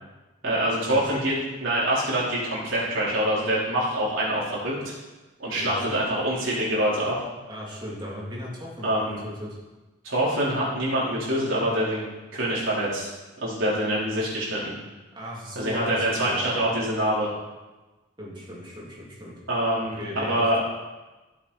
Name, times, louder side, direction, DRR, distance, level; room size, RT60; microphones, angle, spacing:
voice 1, 0.4-1.3 1.6-4.9 5.4-7.2 8.8-9.2 10.0-12.1 12.3-13.1 13.4-14.7 15.6-17.3 19.5-20.6, right 1 dB, 75° right, -7 dB, 4.2 m, -25 dB
voice 2, 5.6-5.9 7.5-9.5 15.1-16.6 18.2-19.4 19.8-20.6, equal, 25° right, -5 dB, 3.1 m, -37 dB
16.0 x 7.8 x 4.3 m, 1.2 s
head